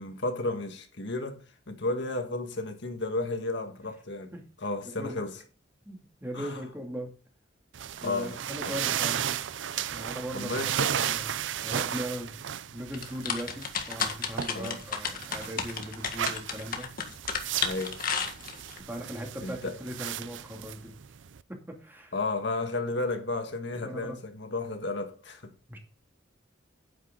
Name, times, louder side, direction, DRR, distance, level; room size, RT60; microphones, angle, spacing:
voice 1, 0.0-4.3 4.6-5.3 6.3-6.6 8.0-8.4 10.3-10.9 14.5-14.8 17.6-18.0 19.4-19.7 22.1-25.4, left 2 dB, 65° left, 1.6 m, -33 dB
voice 2, 5.8-7.1 8.0-9.3 9.9-11.3 11.6-12.4 12.7-17.2 18.9-20.9 21.5-22.1 23.7-24.2 25.7-25.8, equal, 10° right, 2.6 m, -39 dB
sound 1, 7.7-21.4, right 9 dB, 75° right, 0.5 m, -35 dB
sound 2, 12.9-18.8, left 6 dB, 50° left, 1.7 m, -32 dB
9.5 x 9.4 x 3.8 m
head